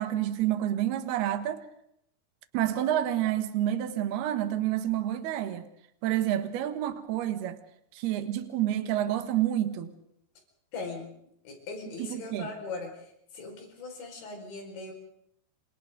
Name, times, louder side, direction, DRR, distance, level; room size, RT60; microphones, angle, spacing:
voice 1, 0.0-1.6 2.5-5.7 6.0-7.6 7.9-9.9 12.0-12.5, right 12 dB, 70° right, 3.2 m, -29 dB
voice 2, 10.7-11.1 11.4-14.9, left 3 dB, 80° left, 7.4 m, -40 dB
29.0 x 26.0 x 3.8 m
omnidirectional pair, 5.1 m